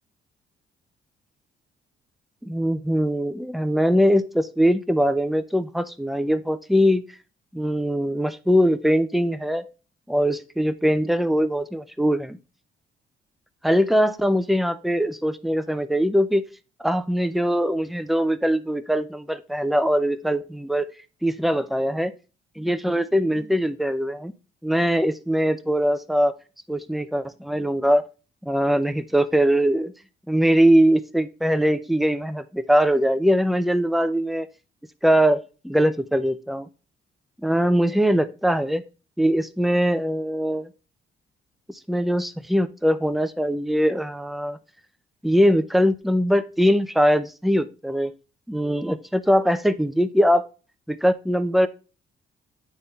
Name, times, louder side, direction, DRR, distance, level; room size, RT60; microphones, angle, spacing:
voice 1, 2.4-7.0 7.5-9.6 10.1-12.4 13.6-16.4 16.8-20.9 21.2-22.1 22.6-24.3 24.6-26.3 26.7-28.0 28.4-29.9 30.3-34.5 35.0-36.7 37.4-38.8 39.2-40.7 41.9-44.6 45.2-48.1 48.5-50.5 50.9-51.7, equal, ahead, 11 dB, 0.6 m, -21 dB
8.8 x 3.6 x 4.0 m, 0.33 s
cardioid pair, 90°, 20 cm